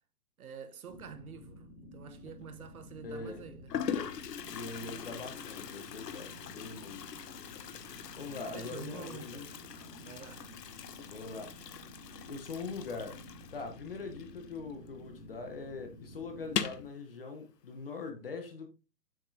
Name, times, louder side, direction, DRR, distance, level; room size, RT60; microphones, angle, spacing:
voice 1, 0.4-3.7 8.5-9.5 10.0-10.5, right 7 dB, 65° right, 1.0 m, -48 dB
sound 1, 0.9-16.9, left 1 dB, 55° left, 2.3 m, -52 dB
Toilet flush, 2.2-2.7 3.4-3.5 3.7-15.0 15.2-15.3 15.7-15.8 16.4-16.9, left 8 dB, 90° left, 0.9 m, -41 dB
voice 2, 3.0-3.4 4.5-7.1 8.2-9.5 11.0-11.5 12.2-13.2 13.5-18.7, left 4 dB, 35° left, 0.9 m, -42 dB
Guitar, 8.3-15.0, equal, 10° right, 3.1 m, -63 dB
7.4 x 5.1 x 2.6 m
hypercardioid pair, 175°, 47 cm